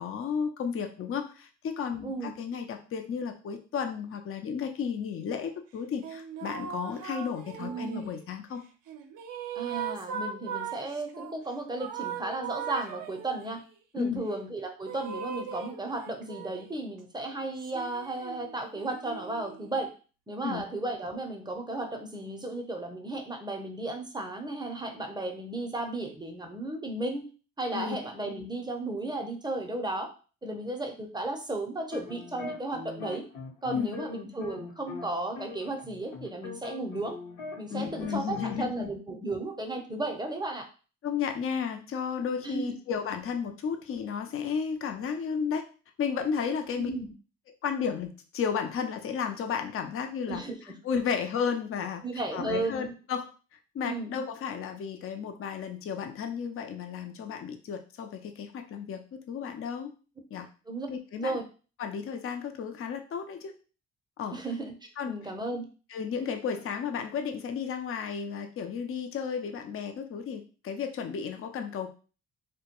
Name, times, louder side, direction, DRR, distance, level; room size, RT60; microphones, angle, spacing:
voice 1, 0.0-8.6 14.0-14.2 20.4-20.6 27.7-28.0 33.7-34.0 37.7-38.9 41.0-45.6 46.0-46.9 47.6-50.4 50.8-52.0 52.3-53.3 53.7-59.9 60.3-60.5 60.9-61.4 61.8-63.5 64.2-64.4 65.0-65.2 65.9-71.9, left 6 dB, 40° left, 6 dB, 0.5 m, -33 dB
voice 2, 2.0-2.3 7.6-8.1 9.5-13.6 13.9-19.9 20.3-27.3 27.6-30.1 30.4-33.2 33.6-37.2 37.6-40.7 42.4-42.7 46.8-47.1 50.3-50.6 52.0-52.9 53.8-54.1 60.7-60.9 61.1-61.4 64.3-64.7 65.1-65.7, right 2 dB, 10° right, 3 dB, 0.6 m, -34 dB
sound 1, 6.0-8.2 8.9-11.3 11.8-13.6 14.8-16.8 17.6-19.9, right 7 dB, 60° right, 0.5 m, -39 dB
sound 2, 31.8-35.1 35.4-38.6, left 4 dB, 65° left, 0.9 m, -42 dB
2.2 x 2.2 x 2.9 m, 0.36 s
supercardioid pair, 60°, 35 cm